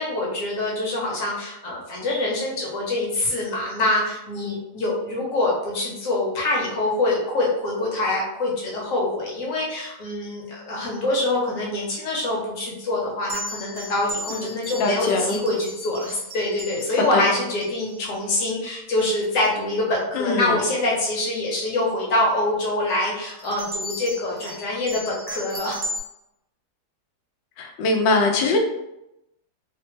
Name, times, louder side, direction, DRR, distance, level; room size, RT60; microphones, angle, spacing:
voice 1, 0.0-25.8, left 2 dB, 55° left, -3 dB, 1.1 m, -25 dB
sound 1, 13.3-18.1 18.9-19.1 19.4-19.8 20.5-20.7 23.2-26.0, equal, 65° right, 1.1 m, -36 dB
voice 2, 14.8-15.4 17.1-17.2 20.1-20.6 27.6-28.6, left 2 dB, 85° left, 2 dB, 1.3 m, -22 dB
3.3 x 2.1 x 3.1 m, 0.87 s
omnidirectional pair, 1.9 m